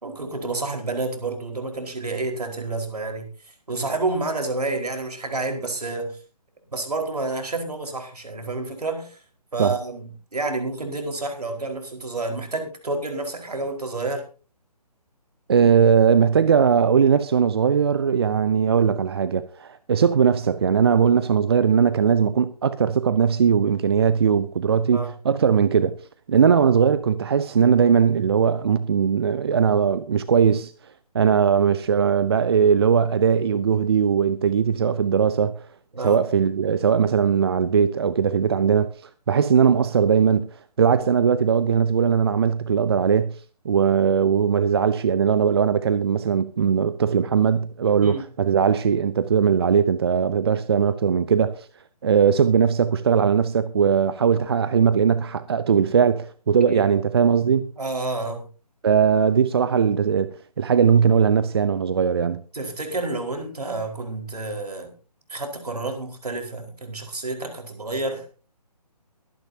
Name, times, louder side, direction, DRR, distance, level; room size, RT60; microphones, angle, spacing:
voice 1, 0.0-3.3 3.7-6.2 6.7-9.2 9.5-14.3 24.9-25.1 26.4-26.5 35.9-36.2 48.0-48.2 56.7-56.8 57.8-58.4 62.5-64.9 65.3-68.2, right 2 dB, 70° right, 4.6 m, -29 dB
voice 2, 15.5-26.0 26.3-30.7 31.1-35.6 36.0-40.5 40.8-43.4 43.6-51.7 52.0-57.7 58.8-60.3 60.6-62.4, right 7 dB, 40° right, 0.7 m, -19 dB
23.0 x 9.9 x 2.8 m
figure-of-eight pair, 145°, 21 cm